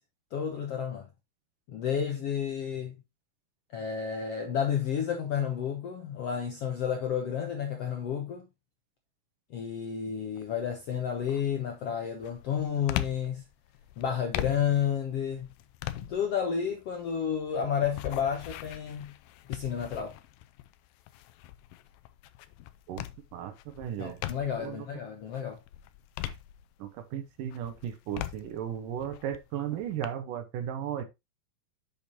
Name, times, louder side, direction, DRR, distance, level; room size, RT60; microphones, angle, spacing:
voice 1, 0.3-1.1 1.7-2.9 3.7-8.4 9.5-13.4 14.0-15.5 16.0-19.1 19.5-20.2 24.0-25.6, left 8 dB, 65° left, 1.5 m, -31 dB
sound 1, 10.4-10.8 11.2-24.8 25.2-27.1 27.5-30.1, left 14 dB, 80° left, 2.3 m, -41 dB
voice 2, 23.3-24.2 24.6-24.9 26.8-31.0, right 10 dB, 75° right, 2.4 m, -35 dB
8.1 x 6.8 x 2.7 m
omnidirectional pair, 4.2 m